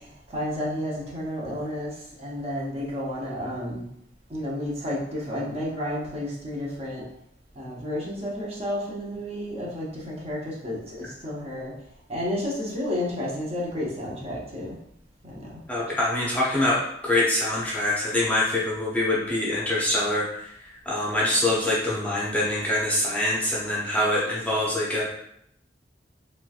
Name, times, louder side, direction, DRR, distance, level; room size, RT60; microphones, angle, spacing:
voice 1, 0.3-1.9 2.2-3.8 4.3-7.0 7.6-10.9 11.2-11.7 12.1-14.8 15.2-15.6, left 1 dB, 35° right, -5 dB, 0.8 m, -31 dB
voice 2, 15.7-16.8 17.0-25.0, left 1 dB, 10° left, -6 dB, 0.7 m, -24 dB
3.1 x 3.1 x 2.3 m, 0.74 s
head